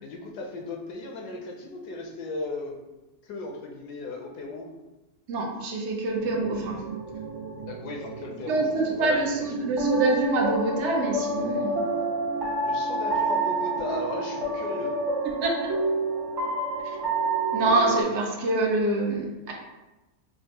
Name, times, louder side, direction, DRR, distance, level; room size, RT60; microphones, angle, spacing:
voice 1, 0.0-2.8 3.2-4.7 7.6-9.5 12.6-14.9, left 2 dB, 75° left, 1 dB, 1.1 m, -36 dB
voice 2, 5.3-6.8 8.5-11.8 15.2-15.5 16.8-17.0 17.5-19.5, right 2 dB, 65° right, 0 dB, 0.7 m, -26 dB
sound 1, 6.2-18.0, right 2 dB, 30° right, 0.4 m, -29 dB
5.2 x 2.0 x 2.8 m, 1.0 s
omnidirectional pair, 1.8 m